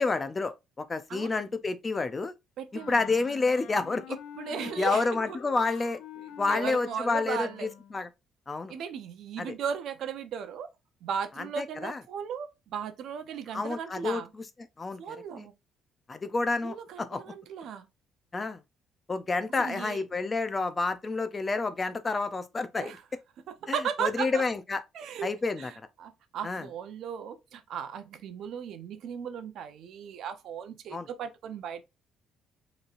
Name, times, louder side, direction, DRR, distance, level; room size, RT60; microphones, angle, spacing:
voice 1, 0.0-2.3 2.7-4.2 4.8-6.0 6.4-7.5 7.9-8.1 8.5-8.7 9.4-9.5 11.4-12.0 13.5-14.2 14.8-15.2 16.1-17.2 18.3-18.6 19.1-22.9 23.7-24.8 25.2-25.7 26.4-26.6 30.9-31.1, left 3 dB, 20° left, 0.3 m, -29 dB
voice 2, 1.1-1.4 2.6-3.0 4.4-5.4 5.7-5.8 6.2-7.7 8.7-10.7 11.0-14.3 15.0-15.5 16.6-17.9 19.6-20.0 22.8-23.0 23.6-24.4 24.9-25.3 25.6-31.8, right 7 dB, 55° right, 0.6 m, -36 dB
Wind instrument woodwind instrument, 2.7-8.0, left 9 dB, 70° left, 0.6 m, -47 dB
5.2 x 3.1 x 2.4 m
cardioid pair, 175°, 0 cm